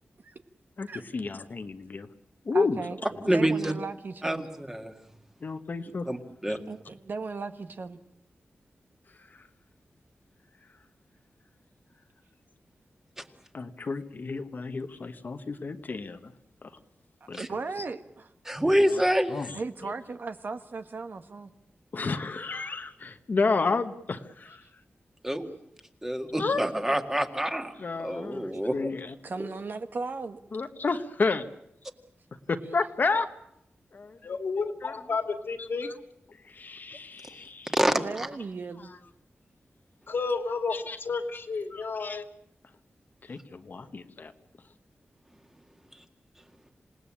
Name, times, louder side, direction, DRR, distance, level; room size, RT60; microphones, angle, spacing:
voice 1, 0.8-2.1 2.4-2.8 5.4-6.1 6.5-6.6 9.2-9.5 13.5-16.3 16.6-16.7 17.3-17.4 17.8-17.9 18.7-19.0 19.3-19.9 21.9-24.7 26.4-26.6 27.8-29.1 30.5-31.5 32.5-33.3 33.9-34.2 34.8-35.0 35.6-35.9 36.3-37.7 38.8-39.0 40.7-41.0 41.3-41.4 41.7-42.2 43.2-44.3, left 4 dB, 50° left, 8 dB, 1.2 m, -31 dB
voice 2, 2.5-3.0 3.2-4.5 6.7-8.0 17.4-18.3 19.5-21.5 29.2-30.4 37.9-38.9, right 4 dB, 55° right, 9 dB, 1.4 m, -36 dB
voice 3, 3.3-3.7 4.2-4.9 6.1-6.2 6.4-6.6 13.2-13.3 17.3-17.5 18.5-19.3 25.2-25.5 26.0-28.9 29.4-29.5 37.7-38.3 45.9-46.0, right 1 dB, 10° right, 5 dB, 2.0 m, -27 dB
voice 4, 34.2-35.9 40.1-42.3, left 4 dB, 65° left, 6 dB, 2.4 m, -31 dB
27.5 x 18.0 x 8.7 m, 0.82 s
wide cardioid pair, 135°, 4 cm